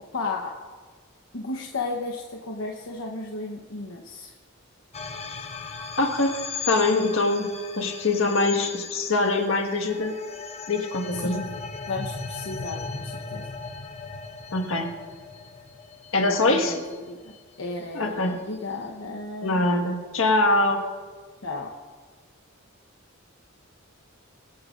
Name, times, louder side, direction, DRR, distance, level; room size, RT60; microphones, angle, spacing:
voice 1, 0.1-0.5 1.3-4.3 11.1-11.5 11.9-13.5 16.3-19.6 21.4-21.7, left 3 dB, 85° left, 0 dB, 1.0 m, -34 dB
sound 1, 4.9-17.4, left 4 dB, 30° left, 0.8 m, -38 dB
voice 2, 6.0-6.3 6.6-7.5 7.8-10.2 10.7-11.5 14.5-14.9 16.1-16.8 17.9-18.4 19.4-20.8, left 2 dB, 70° left, 3 dB, 1.6 m, -23 dB
23.5 x 10.5 x 2.5 m, 1.5 s
head